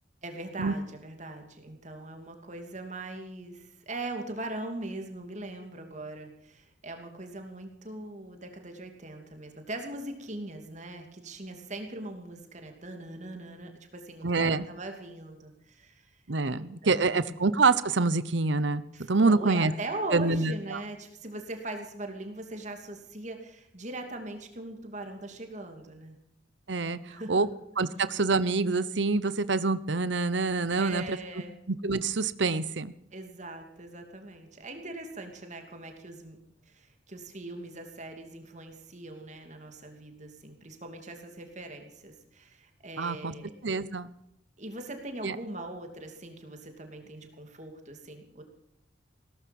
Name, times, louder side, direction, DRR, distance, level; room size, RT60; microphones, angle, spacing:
voice 1, 0.2-16.2 16.5-17.4 18.9-26.2 27.1-27.4 30.8-31.6 33.1-36.4 36.7-43.5 44.6-48.4, right 2 dB, 40° right, 5 dB, 2.8 m, -41 dB
voice 2, 14.2-14.7 16.3-18.8 19.1-19.7 20.1-20.8 26.7-27.0 27.3-27.5 27.8-31.2 31.8-32.9 43.0-43.3 43.6-44.1 45.2-45.4, right 3 dB, 75° right, 16 dB, 0.9 m, -26 dB
17.5 x 14.5 x 5.4 m, 0.79 s
head